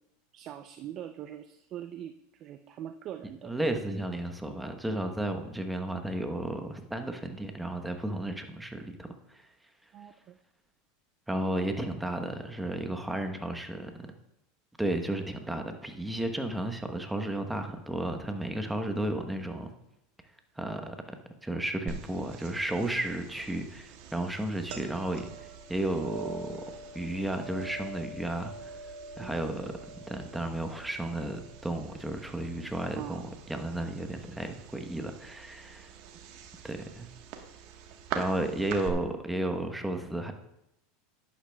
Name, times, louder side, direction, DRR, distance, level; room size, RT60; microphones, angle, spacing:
voice 1, 0.3-3.6 9.9-10.4 29.2-29.4 32.9-33.3 38.1-38.2, right 11 dB, 45° right, 9 dB, 0.5 m, -42 dB
voice 2, 3.4-9.5 11.3-14.1 14.8-19.7 20.6-26.6 26.9-28.7 29.2-35.9 36.6-37.1 38.1-40.3, right 1 dB, 5° right, 6 dB, 1.0 m, -33 dB
sound 1, 21.9-38.9, right 6 dB, 60° right, 1.3 m, -44 dB
11.0 x 10.0 x 2.3 m, 0.83 s
hypercardioid pair, 110°, 0 cm